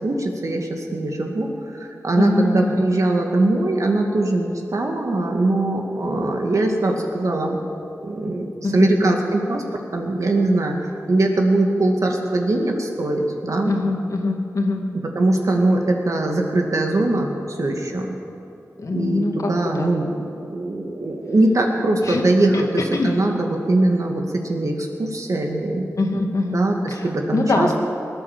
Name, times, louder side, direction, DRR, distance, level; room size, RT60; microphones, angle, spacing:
voice 1, 0.0-7.6 8.0-9.6 9.9-10.8 11.1-13.7 15.2-18.1 18.9-22.5 23.0-25.8 26.5-26.7 27.0-27.8, right 2 dB, 60° right, 2 dB, 2.1 m, -21 dB
voice 2, 2.2-2.8 8.6-9.2 13.6-14.8 18.8-20.0 22.0-22.3 22.5-23.2 26.0-26.6 26.9-27.7, left 2 dB, 60° left, 2 dB, 1.9 m, -23 dB
19.0 x 9.6 x 7.5 m, 2.6 s
cardioid pair, 60°, 6 cm